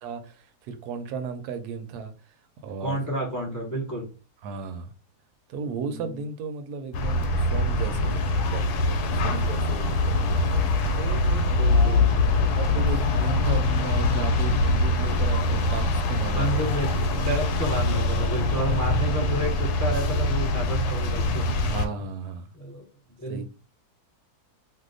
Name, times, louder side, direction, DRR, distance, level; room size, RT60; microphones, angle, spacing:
voice 1, 0.0-2.1 2.6-3.0 4.4-4.9 5.5-10.6 10.9-12.1 12.4-16.5 18.5-18.8 21.6-22.5 23.3-23.4, right 5 dB, 80° right, 1.1 m, -35 dB
voice 2, 2.8-4.1 5.6-6.1 9.0-9.7 11.6-12.1 16.3-21.6 22.5-22.8 23.2-23.4, equal, 30° left, 0.3 m, -31 dB
sound 1, 6.9-21.9, left 2 dB, 80° left, 1.1 m, -23 dB
2.8 x 2.1 x 3.8 m
omnidirectional pair, 1.7 m